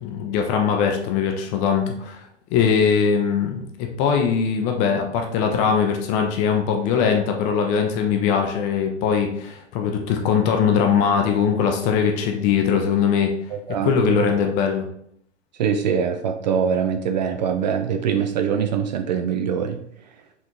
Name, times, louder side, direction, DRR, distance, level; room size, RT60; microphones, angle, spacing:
voice 1, 0.0-2.2 2.5-3.7 4.0-13.3 13.8-14.9, left 7 dB, 20° left, 3 dB, 0.5 m, -21 dB
voice 2, 13.5-14.3 15.6-19.8, right 7 dB, 40° right, 7 dB, 0.4 m, -23 dB
4.3 x 3.5 x 2.9 m, 0.69 s
figure-of-eight pair, 100°, 35 cm